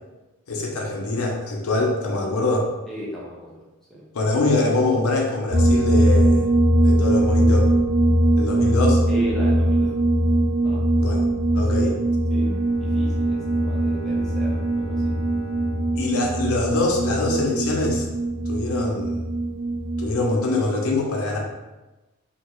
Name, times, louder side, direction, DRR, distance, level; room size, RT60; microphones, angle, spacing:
voice 1, 0.5-2.7 4.1-6.5 6.8-7.7 8.4-9.0 11.0-11.3 11.5-11.9 15.9-18.1 18.5-19.2 20.0-21.4, left 2 dB, 80° left, 0 dB, 0.6 m, -24 dB
voice 2, 2.9-3.6 3.9-4.0 9.1-9.9 10.6-10.8 11.7-11.9 12.3-12.5 12.8-15.2, equal, ahead, -6 dB, 0.5 m, -36 dB
sound 1, 5.5-20.3, right 1 dB, 80° right, 1.1 m, -21 dB
Bowed string instrument, 12.4-17.3, equal, 65° right, 1.0 m, -39 dB
2.9 x 2.4 x 3.0 m, 1.1 s
head